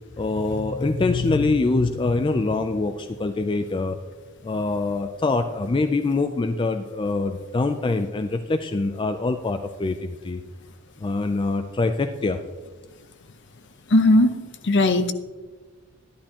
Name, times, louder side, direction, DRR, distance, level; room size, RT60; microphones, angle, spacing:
voice 1, 0.2-4.0 4.4-10.4 11.0-12.4, left 3 dB, 20° left, 7 dB, 0.3 m, -24 dB
voice 2, 13.9-14.4 14.6-15.1, left 1 dB, 55° left, 9 dB, 0.7 m, -17 dB
12.0 x 11.0 x 2.9 m, 1.3 s
head